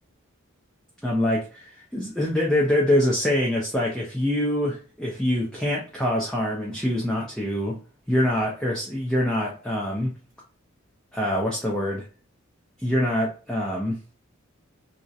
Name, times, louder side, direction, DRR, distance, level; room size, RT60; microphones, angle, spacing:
voice 1, 1.0-1.4 1.7-7.8 8.1-10.2 11.1-12.1 12.8-14.0, left 1 dB, 5° left, -4 dB, 0.4 m, -24 dB
2.6 x 2.0 x 2.4 m, 0.36 s
head